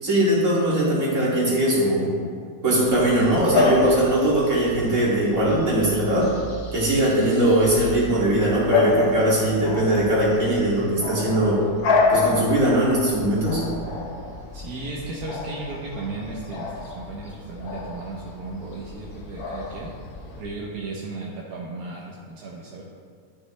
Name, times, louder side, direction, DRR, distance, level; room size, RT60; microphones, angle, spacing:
voice 1, 0.0-2.1 2.6-6.3 6.7-11.6 12.1-13.6, right 1 dB, 55° right, -7 dB, 2.8 m, -20 dB
Bark / Bird vocalization bird call bird song, 2.9-20.4, left 3 dB, 90° left, 1.5 m, -29 dB
voice 2, 14.5-19.9 20.4-22.8, right 3 dB, 85° right, -3 dB, 1.5 m, -35 dB
12.5 x 6.3 x 3.3 m, 2.1 s
omnidirectional pair, 1.5 m